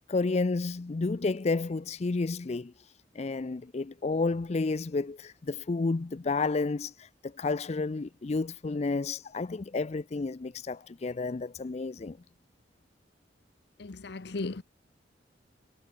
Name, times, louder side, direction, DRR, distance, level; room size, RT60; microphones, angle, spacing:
voice 1, 0.1-2.7 3.1-12.2, left 3 dB, 35° left, 0.4 m, -31 dB
voice 2, 13.8-14.6, left 3 dB, 65° left, 0.8 m, -36 dB
head